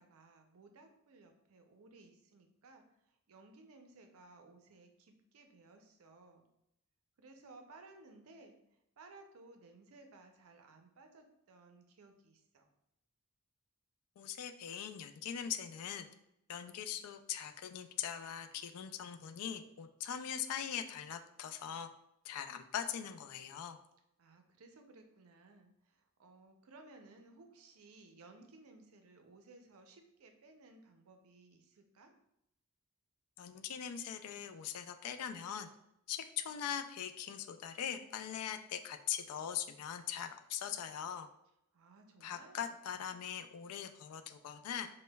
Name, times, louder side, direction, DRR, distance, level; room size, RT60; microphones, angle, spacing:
voice 1, 0.0-6.5 7.2-12.7 24.2-32.1 41.7-42.7, right 3 dB, 70° right, 5 dB, 0.5 m, -59 dB
voice 2, 14.2-16.1 16.5-21.9 22.2-23.8 33.4-35.7 36.1-41.3 42.2-44.9, left 9 dB, 85° left, 9 dB, 0.3 m, -41 dB
5.1 x 2.1 x 2.2 m, 0.81 s
head